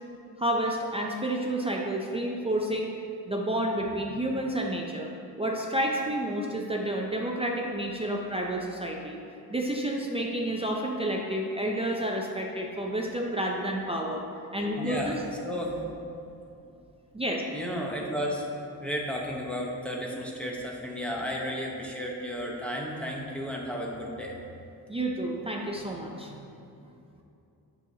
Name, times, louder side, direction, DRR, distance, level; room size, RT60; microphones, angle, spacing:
voice 1, 0.4-2.9 3.3-5.1 5.4-9.2 9.5-14.2 14.5-15.2 17.1-17.4 24.9-26.4, right 1 dB, 15° right, -1 dB, 0.4 m, -30 dB
voice 2, 14.8-15.2 15.4-15.8 17.5-18.4 18.8-24.4, equal, 5° left, -3 dB, 0.8 m, -33 dB
8.9 x 6.9 x 2.7 m, 2.7 s
wide cardioid pair, 165°, 39 cm